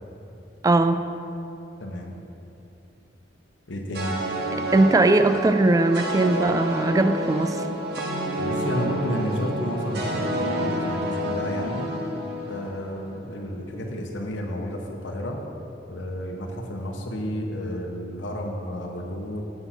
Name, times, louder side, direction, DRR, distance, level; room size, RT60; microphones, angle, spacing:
voice 1, 0.6-1.0 4.7-7.7, right 2 dB, 20° right, 10 dB, 0.3 m, -20 dB
voice 2, 1.8-2.1 3.7-4.2 8.4-11.9 12.4-15.4 15.9-19.4, equal, 85° left, 1 dB, 1.0 m, -31 dB
sound 1, 3.9-13.3, right 1 dB, 60° right, 0.9 m, -29 dB
8.0 x 5.8 x 5.8 m, 2.9 s
head